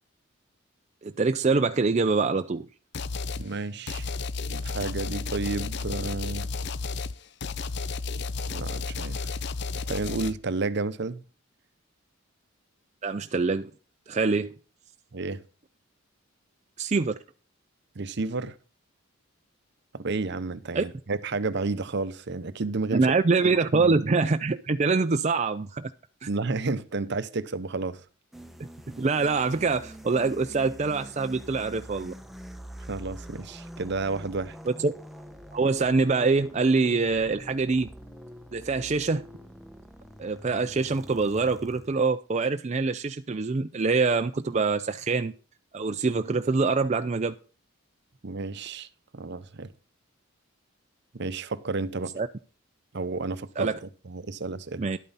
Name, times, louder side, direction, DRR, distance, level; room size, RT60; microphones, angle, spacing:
voice 1, 1.0-2.7 13.0-13.7 14.1-14.6 16.8-17.2 20.8-20.9 22.9-25.9 26.2-26.3 29.0-32.1 34.7-34.9 35.5-37.9 38.5-39.2 40.2-45.3 45.7-47.3 52.2-52.3 53.6-53.8 54.8-55.0, right 4 dB, 35° right, 0.4 m, -25 dB
sound 1, 2.9-3.5 3.9-10.3, left 4 dB, 55° left, 0.6 m, -32 dB
voice 2, 3.4-4.1 4.5-6.5 8.5-9.3 9.8-11.2 15.1-15.4 17.9-18.5 19.9-23.1 23.4-23.9 26.3-28.0 32.9-34.6 48.2-48.9 49.1-49.7 51.1-52.1 52.9-54.9, right 3 dB, 55° right, 0.8 m, -31 dB
sound 2, 28.3-42.0, equal, ahead, 0.9 m, -45 dB
12.0 x 8.9 x 4.1 m
head